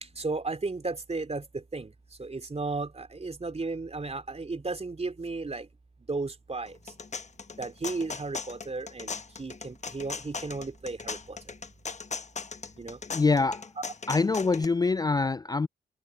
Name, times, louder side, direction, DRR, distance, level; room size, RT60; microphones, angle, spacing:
voice 1, 0.0-1.9 2.2-5.7 6.1-6.9 7.6-11.4 12.8-13.0, right 3 dB, 35° right, 3.3 m, -34 dB
sound 1, 6.7-14.6, left 4 dB, 40° left, 1.1 m, -38 dB
voice 2, 13.1-13.7 14.1-15.7, left 4 dB, 20° left, 0.4 m, -25 dB
supercardioid pair, 45°, 17 cm